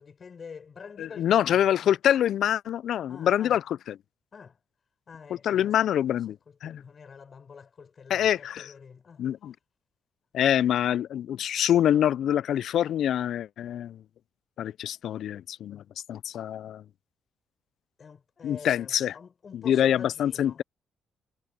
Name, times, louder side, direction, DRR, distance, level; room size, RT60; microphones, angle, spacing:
voice 1, 0.0-1.9 3.1-3.6 4.3-4.6 5.1-5.7 6.6-9.3 18.0-20.6, left 6 dB, 45° left, 4.5 m, -47 dB
voice 2, 1.0-4.0 5.4-6.8 8.1-8.7 9.2-9.5 10.3-14.0 14.6-15.8 16.1-16.8 18.4-19.2 19.5-20.6, left 10 dB, 70° left, 0.4 m, -25 dB
cardioid pair, 90°, 0 cm